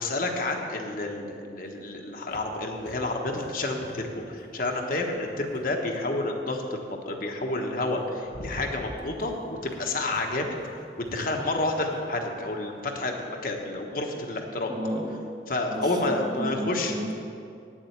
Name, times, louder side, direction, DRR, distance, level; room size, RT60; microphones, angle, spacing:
voice 1, 0.0-14.7 15.5-16.9, left 2 dB, 50° left, 2 dB, 1.2 m, -30 dB
sound 1, 1.6-6.2 7.5-7.6 8.0-13.6, left 1 dB, 80° left, 0.9 m, -47 dB
voice 2, 14.7-15.3 15.7-17.1, right 1 dB, 25° right, 1 dB, 1.0 m, -32 dB
9.4 x 7.4 x 8.1 m, 2.5 s
head